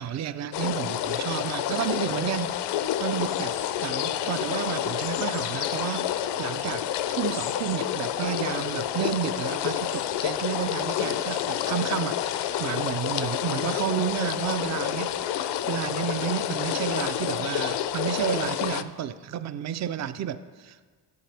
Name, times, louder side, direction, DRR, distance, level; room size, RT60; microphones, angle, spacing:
voice 1, 0.0-2.6 3.0-6.8 7.1-15.1 15.7-20.8, right 10 dB, 40° right, 13 dB, 0.5 m, -31 dB
sound 1, 0.5-18.8, left 11 dB, 65° left, 0.6 m, -29 dB
10.5 x 6.6 x 3.4 m, 1.4 s
cardioid pair, 80°, 44 cm